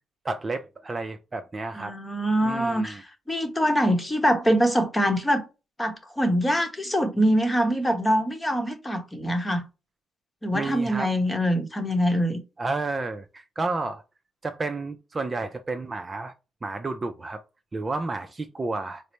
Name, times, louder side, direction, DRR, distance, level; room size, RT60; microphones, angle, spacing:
voice 1, 0.2-1.9 2.4-3.0 10.5-11.1 12.6-14.0 14.4-16.3 16.6-17.4 17.7-19.0, right 3 dB, 30° right, 0.4 m, -31 dB
voice 2, 1.7-5.4 5.8-9.6 10.4-12.4, equal, 15° left, 0.9 m, -24 dB
4.1 x 2.0 x 3.1 m
cardioid pair, 90°, 0 cm